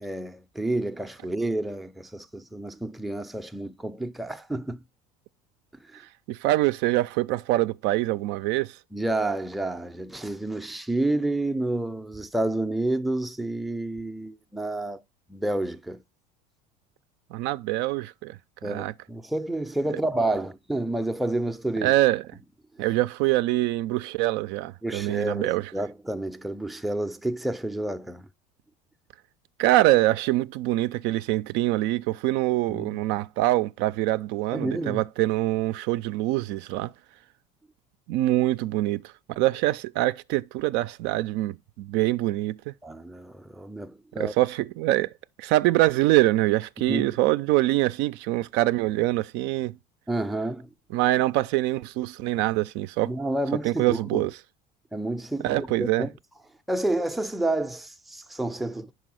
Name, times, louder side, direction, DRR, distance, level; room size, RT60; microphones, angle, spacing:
voice 1, 0.0-4.8 5.7-6.0 8.9-15.0 15.3-16.0 18.6-21.9 22.7-22.8 24.8-28.3 32.7-33.0 34.5-35.0 42.8-44.3 46.9-47.1 50.1-50.7 53.0-54.3 54.9-56.1 56.7-58.9, right 2 dB, ahead, 0.5 m, -29 dB
voice 2, 6.3-8.8 17.3-18.9 21.8-22.2 22.8-25.7 29.6-36.9 38.1-39.0 39.4-42.7 44.2-45.1 45.4-49.8 50.9-53.1 53.6-54.3 55.4-56.1, right 17 dB, 60° right, 0.4 m, -24 dB
5.2 x 4.8 x 6.2 m
hypercardioid pair, 80°, 20 cm